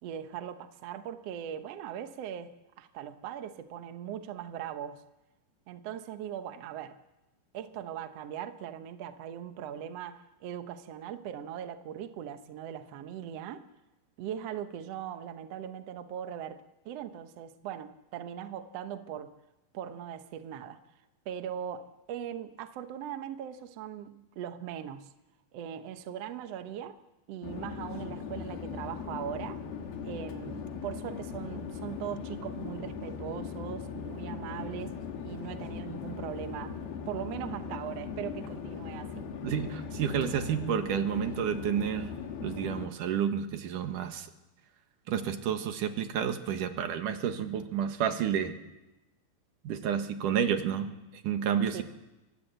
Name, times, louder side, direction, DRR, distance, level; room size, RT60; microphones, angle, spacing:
voice 1, 0.0-2.5 2.8-5.0 5.7-7.0 7.5-13.6 14.2-19.3 19.7-20.8 21.2-25.1 25.5-27.0 27.3-29.6 30.0-35.0 35.2-36.8 37.1-39.3 51.7-51.8, right 9 dB, 85° right, 9 dB, 1.4 m, -40 dB
Chatter / Fixed-wing aircraft airplane, 27.4-42.9, left 6 dB, 75° left, 3.8 m, -39 dB
voice 2, 39.4-42.1 42.4-44.3 45.1-48.5 49.6-51.8, right 8 dB, 60° right, 7 dB, 2.8 m, -30 dB
24.0 x 19.5 x 8.0 m, 1.0 s
omnidirectional pair, 4.5 m